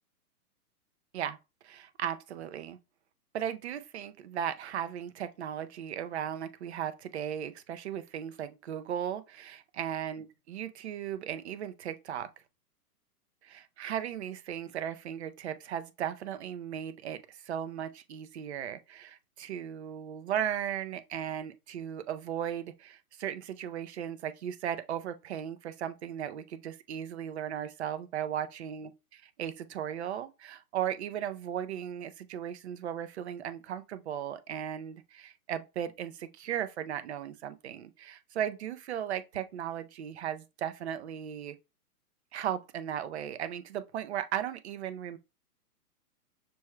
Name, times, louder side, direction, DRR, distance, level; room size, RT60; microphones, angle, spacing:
voice 1, 1.6-2.8 3.3-12.3 13.4-28.9 29.4-41.6 42.3-45.2, right 9 dB, 45° right, 0.6 m, -36 dB
6.1 x 2.2 x 3.1 m
hypercardioid pair, 155°, 46 cm